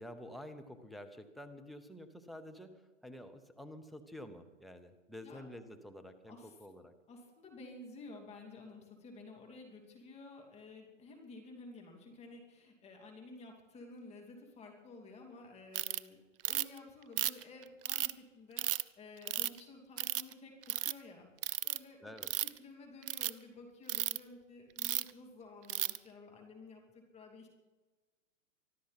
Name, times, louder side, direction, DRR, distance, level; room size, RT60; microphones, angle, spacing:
voice 1, 0.0-6.9 22.0-22.3, left 1 dB, ahead, 9 dB, 0.7 m, -49 dB
voice 2, 7.1-18.7 19.0-21.3 21.6-27.5, left 3 dB, 15° left, 1 dB, 2.7 m, -53 dB
Ratchet pawl, 15.7-16.0 16.4-16.8 17.2-18.1 18.6-18.8 19.3-19.6 20.0-20.3 20.6-20.9 21.4-21.8 22.2-22.6 23.0-23.3 23.9-24.2 24.8-25.1 25.7-26.0, right 12 dB, 45° right, 0.6 m, -34 dB
24.5 x 13.0 x 4.2 m, 1.2 s
hypercardioid pair, 130°, 40 cm